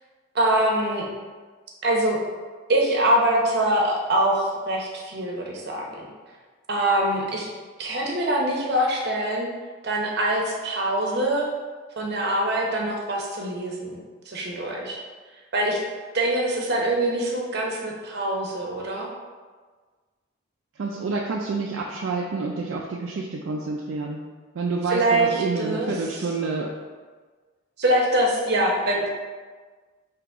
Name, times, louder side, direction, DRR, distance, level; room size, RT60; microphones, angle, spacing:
voice 1, 0.3-1.1 1.8-2.2 2.7-6.1 6.7-7.5 7.8-9.5 9.8-11.5 12.0-14.0 14.3-15.0 15.5-15.8 16.1-19.1 24.9-25.9 27.8-29.1, right 1 dB, 50° right, -1 dB, 0.8 m, -24 dB
voice 2, 20.8-24.2 24.5-26.7, right 3 dB, 65° right, -1 dB, 0.4 m, -28 dB
3.8 x 2.8 x 4.6 m, 1.4 s
head